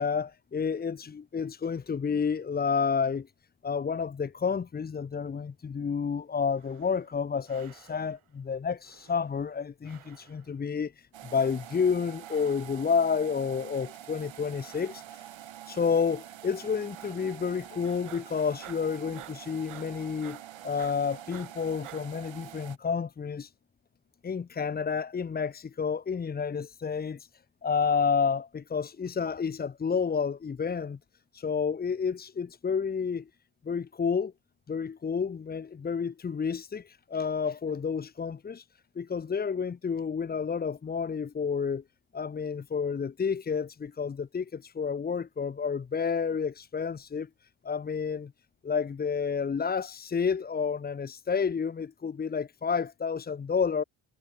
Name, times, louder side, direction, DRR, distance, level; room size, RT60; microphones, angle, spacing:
voice 1, 0.0-3.3 3.6-15.3 15.7-23.5 24.2-27.3 27.6-31.0 31.3-33.2 33.7-34.3 34.7-38.6 39.0-41.8 42.1-47.3 47.6-48.3 48.6-53.8, left 6 dB, 25° left, 0.3 m, -30 dB
sound 1, 6.5-7.2 7.5-8.3 8.8-9.6 9.8-10.6 11.2-11.8 12.2-12.9 13.5-14.1 14.6-15.4 15.8-16.3 16.9-17.6 17.8-22.0, right 11 dB, 85° right, 2.0 m, -53 dB
sound 2, 11.1-22.8, right 12 dB, 65° right, 1.1 m, -46 dB
wide cardioid pair, 175°, 49 cm